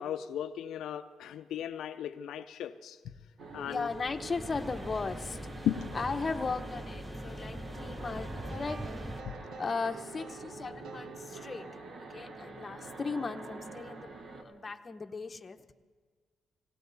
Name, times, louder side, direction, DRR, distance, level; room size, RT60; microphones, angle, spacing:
voice 1, 0.0-3.0 3.5-3.9 5.6-6.0 9.3-9.4, left 10 dB, 80° left, 8 dB, 0.5 m, -36 dB
sound 1, 3.4-14.4, right 3 dB, 55° right, 1.7 m, -46 dB
voice 2, 3.6-5.7 5.9-9.1 9.6-11.7 12.0-15.7, left 4 dB, 30° left, 7 dB, 0.9 m, -37 dB
sound 2, 3.6-9.2, equal, ahead, 0.7 m, -42 dB
sound 3, 8.4-12.2, right 6 dB, 75° right, 0.9 m, -50 dB
18.0 x 18.0 x 4.0 m, 1.5 s
cardioid pair, 90°, 0 cm